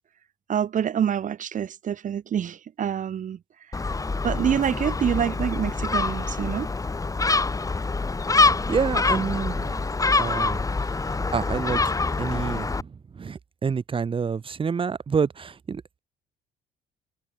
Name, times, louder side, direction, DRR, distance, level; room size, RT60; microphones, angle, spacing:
voice 1, 0.5-3.4 3.7-3.8 4.2-6.7, right 9 dB, 50° right, 5.6 m, -26 dB
Gull seagull, 3.7-12.8, left 3 dB, 20° left, 7.2 m, -25 dB
voice 2, 8.7-9.8 10.2-10.6 10.9-11.9 12.2-16.0, right 6 dB, 30° right, 2.5 m, -28 dB
cardioid pair, 110°, 17 cm